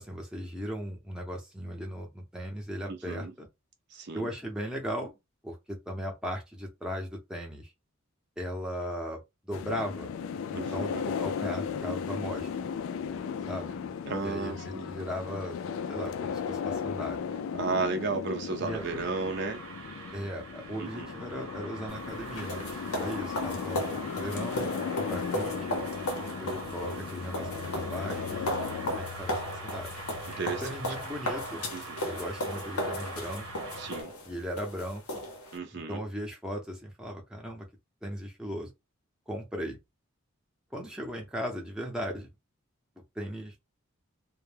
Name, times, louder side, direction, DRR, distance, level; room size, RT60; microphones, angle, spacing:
voice 1, 0.0-3.5 4.1-5.1 5.4-7.7 8.4-10.1 10.5-12.5 13.5-13.7 14.2-15.6 15.9-17.2 18.6-18.8 20.1-23.9 24.2-24.7 25.1-25.8 26.4-28.5 28.9-29.9 30.6-31.6 32.0-33.6 34.2-35.2 35.9-37.7 38.0-38.7 39.3-39.8 40.7-42.3 43.2-43.5, equal, 5° right, 0.6 m, -37 dB
voice 2, 2.9-3.3 3.9-4.3 10.5-11.0 14.1-15.0 17.6-19.6 20.8-21.1 30.4-30.7 31.7-32.0 33.8-34.2 35.5-36.0, right 4 dB, 50° right, 0.5 m, -34 dB
sound 1, 9.5-29.0, left 6 dB, 70° left, 0.3 m, -36 dB
sound 2, 18.6-34.0, right 1 dB, 85° right, 1.0 m, -43 dB
sound 3, 21.9-35.6, left 1 dB, 90° left, 0.7 m, -36 dB
2.2 x 2.1 x 3.2 m
head